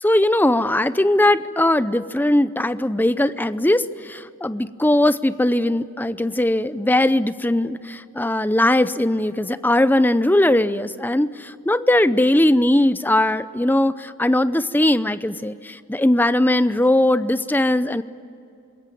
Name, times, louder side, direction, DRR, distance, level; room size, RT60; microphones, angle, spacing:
voice 1, 0.0-18.0, left 1 dB, 10° left, 14 dB, 0.6 m, -19 dB
27.0 x 21.5 x 9.2 m, 2.5 s
head